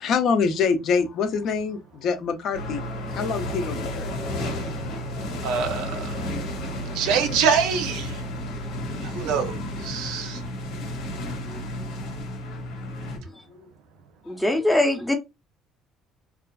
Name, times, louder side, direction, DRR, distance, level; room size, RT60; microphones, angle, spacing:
voice 1, 0.0-2.8 3.1-4.4 6.7-6.8 12.5-12.6 13.1-13.2 14.3-14.4, left 5 dB, 60° left, 0.5 m, -25 dB
sound 1, 2.5-13.2, left 1 dB, 85° left, 1.0 m, -32 dB
voice 2, 5.4-6.2 6.9-8.2 9.0-10.4, right 6 dB, 85° right, 0.6 m, -25 dB
voice 3, 14.3-15.1, left 1 dB, 5° left, 0.5 m, -22 dB
2.4 x 2.3 x 2.3 m
cardioid pair, 125°, 0 cm